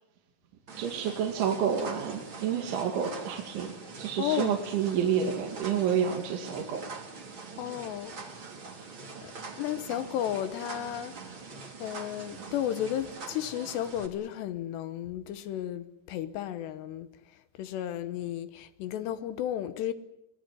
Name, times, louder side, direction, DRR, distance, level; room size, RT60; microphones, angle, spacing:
sound 1, 0.7-14.1, right 4 dB, 30° right, 2.7 m, -44 dB
voice 1, 0.8-6.8 8.4-8.6, right 8 dB, 70° right, 4.6 m, -29 dB
voice 2, 4.2-4.6 7.6-8.4 9.2-11.4 11.8-17.1 17.6-19.9, left 11 dB, 75° left, 2.8 m, -33 dB
24.5 x 18.5 x 9.6 m
omnidirectional pair, 5.7 m